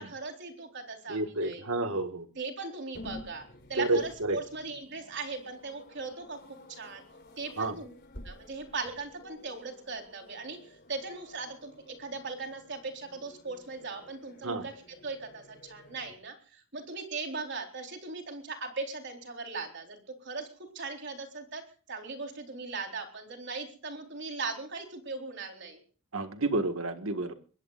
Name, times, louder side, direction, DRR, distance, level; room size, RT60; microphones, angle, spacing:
voice 1, 0.0-1.6 2.3-7.0 7.4-7.9 8.2-20.5 20.7-21.6 21.9-25.8, right 4 dB, 55° right, 3 dB, 4.2 m, -39 dB
voice 2, 1.1-2.3 3.8-4.4 7.6-7.8 14.4-14.6 26.1-27.3, right 2 dB, 80° right, 8 dB, 1.8 m, -30 dB
sound 1, 2.9-16.2, left 1 dB, 50° left, 4.2 m, -52 dB
23.5 x 21.0 x 2.5 m, 0.41 s
head